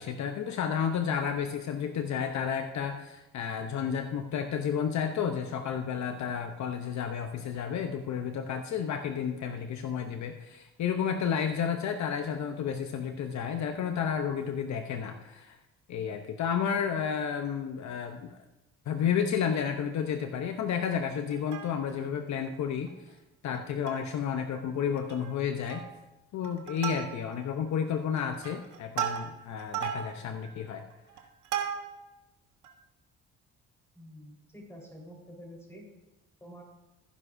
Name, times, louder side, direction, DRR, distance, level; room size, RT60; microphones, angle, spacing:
voice 1, 0.0-15.6 15.9-18.4 18.9-22.9 23.4-25.8 26.3-30.8, left 7 dB, 65° left, 6 dB, 0.8 m, -31 dB
Plucked string instrument, 21.3-22.1 22.5-22.6 22.9-23.1 23.5-24.2 24.5-24.6 25.0-25.3 25.7-26.1 26.4-27.5 28.0-32.1 32.6-32.7, right 9 dB, 80° right, 1.3 m, -36 dB
voice 2, 33.9-35.9 36.4-36.6, equal, 10° left, -1 dB, 4.0 m, -48 dB
16.0 x 10.0 x 2.6 m, 1.0 s
cardioid pair, 90°, 30 cm